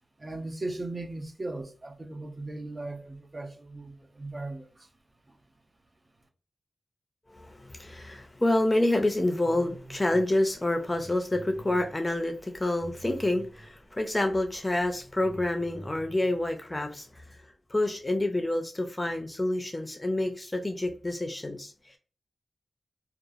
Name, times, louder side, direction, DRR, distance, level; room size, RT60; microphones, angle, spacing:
voice 1, 0.2-4.9, right 2 dB, 40° right, 0.6 m, -38 dB
voice 2, 7.3-17.2 17.7-22.0, left 1 dB, 25° left, 0.5 m, -28 dB
sound 1, 9.4-10.3 10.7-13.7 14.4-14.5 14.9-16.1, right 2 dB, 55° right, 1.5 m, -47 dB
2.8 x 2.3 x 2.4 m
cardioid pair, 65°, 0 cm